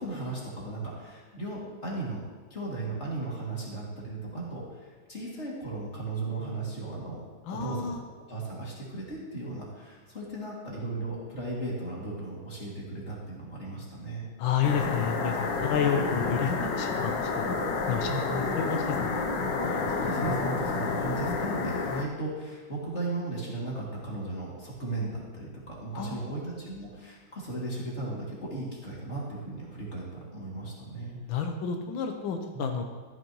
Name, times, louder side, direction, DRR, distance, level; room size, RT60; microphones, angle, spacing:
voice 1, 0.0-2.2 2.5-7.2 7.5-8.0 8.3-14.3 18.1-18.5 19.6-31.2 32.5-32.8, right 2 dB, 35° left, -5 dB, 2.7 m, -36 dB
voice 2, 7.5-8.0 14.4-17.5 17.9-18.1 18.6-19.3 25.9-26.4 31.3-32.8, left 7 dB, 90° left, 4 dB, 1.7 m, -30 dB
sound 1, 14.6-22.0, left 4 dB, 70° left, 1.5 m, -29 dB
14.0 x 9.2 x 3.0 m, 1.4 s
omnidirectional pair, 2.1 m